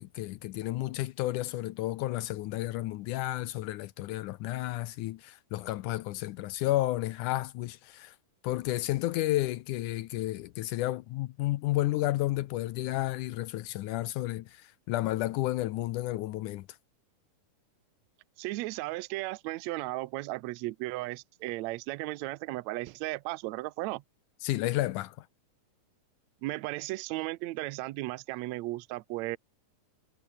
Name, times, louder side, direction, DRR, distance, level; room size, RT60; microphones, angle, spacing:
voice 1, 0.0-8.2 8.4-16.7 24.4-25.3, left 16 dB, 75° left, 2.1 m, -32 dB
voice 2, 18.4-24.0 26.4-29.4, right 19 dB, 80° right, 1.6 m, -35 dB
omnidirectional pair, 3.9 m